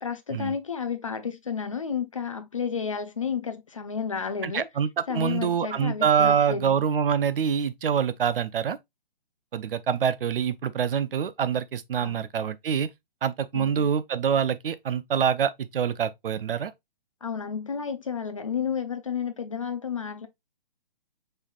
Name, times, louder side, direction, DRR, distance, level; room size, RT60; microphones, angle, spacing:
voice 1, 0.0-4.7 5.1-6.8 12.0-12.2 13.5-13.9 17.2-20.3, left 6 dB, 35° left, 0.4 m, -31 dB
voice 2, 4.4-8.8 9.5-12.9 13.2-16.7, right 7 dB, 70° right, 0.6 m, -25 dB
5.4 x 3.3 x 2.3 m
hypercardioid pair, 175°, 29 cm